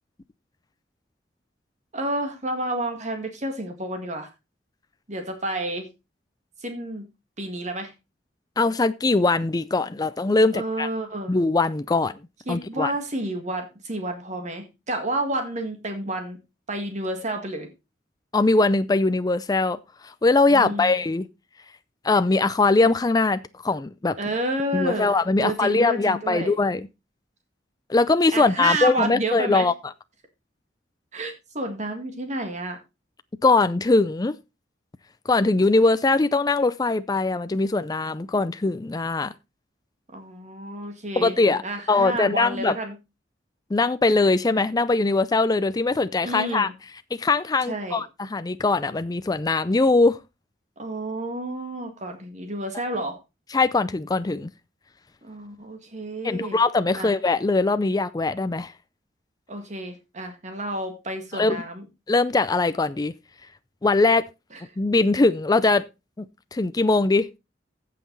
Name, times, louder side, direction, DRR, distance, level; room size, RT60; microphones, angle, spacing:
voice 1, 1.9-4.3 5.1-5.9 6.6-7.0 7.4-7.9 10.5-11.4 12.5-16.4 16.7-17.7 20.5-21.0 24.2-25.1 25.4-26.5 28.3-29.7 31.1-32.8 40.1-41.4 41.6-42.9 46.2-46.7 47.7-48.0 50.8-53.2 55.2-56.6 57.0-57.1 59.5-61.8, right 1 dB, 40° right, 1.8 m, -30 dB
voice 2, 8.6-10.9 11.3-12.2 12.5-12.9 18.3-21.3 22.0-24.2 24.7-26.9 27.9-29.7 33.4-34.4 35.3-39.3 41.2-41.6 41.9-42.8 43.7-46.7 47.1-50.2 53.5-54.5 56.2-58.7 61.3-61.6 62.1-63.1 63.8-64.2 64.8-65.8 66.2-66.3 66.5-67.3, left 3 dB, 20° left, 0.4 m, -21 dB
15.5 x 5.9 x 3.9 m
head